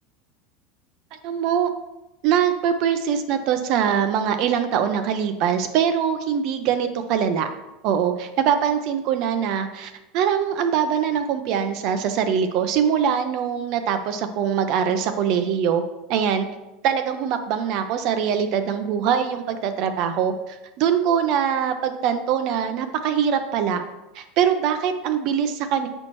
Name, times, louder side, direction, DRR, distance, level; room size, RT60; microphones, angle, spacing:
voice 1, 1.1-1.7 2.2-7.5 7.8-15.8 16.1-16.5 16.8-23.8 24.1-25.9, right 8 dB, 50° right, 8 dB, 0.5 m, -23 dB
7.6 x 4.3 x 3.0 m, 0.98 s
supercardioid pair, 145°, 0 cm